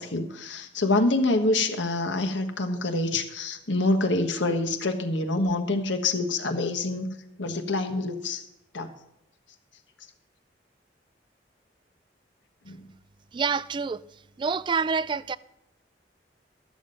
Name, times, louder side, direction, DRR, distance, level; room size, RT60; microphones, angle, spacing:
voice 1, 0.0-7.1 7.4-8.4 8.7-8.9 12.7-12.8, left 2 dB, 90° left, 1.4 m, -26 dB
voice 2, 13.3-14.0 14.4-15.4, right 5 dB, 25° right, 0.3 m, -27 dB
12.5 x 7.4 x 5.3 m
head